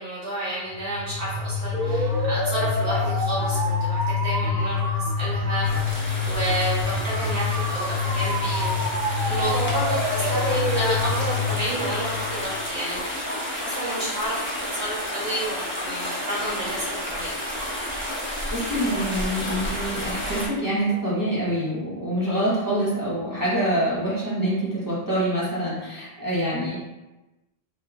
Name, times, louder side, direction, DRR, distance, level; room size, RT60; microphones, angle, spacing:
voice 1, 0.0-5.8 6.2-8.8 9.2-14.4 14.7-17.3, right 1 dB, 80° right, -8 dB, 1.8 m, -30 dB
sound 1, 0.7-12.5, left 3 dB, 55° right, 1.1 m, -26 dB
sound 2, 5.6-20.5, equal, 15° left, 0.6 m, -31 dB
voice 2, 18.5-26.8, right 1 dB, 20° right, -9 dB, 0.8 m, -25 dB
3.5 x 2.1 x 3.5 m, 1.1 s
omnidirectional pair, 1.1 m